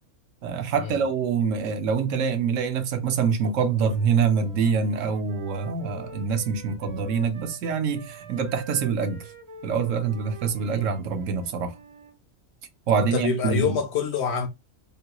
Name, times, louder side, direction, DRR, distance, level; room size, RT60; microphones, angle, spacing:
voice 1, 0.4-9.3 9.6-11.7 12.9-13.8, right 6 dB, 75° right, 1.0 m, -25 dB
Wind instrument woodwind instrument, 3.7-7.6 7.9-12.2, right 2 dB, 40° right, 0.4 m, -46 dB
voice 2, 12.9-14.5, left 6 dB, 65° left, 0.7 m, -27 dB
3.7 x 2.2 x 2.8 m
omnidirectional pair, 1.4 m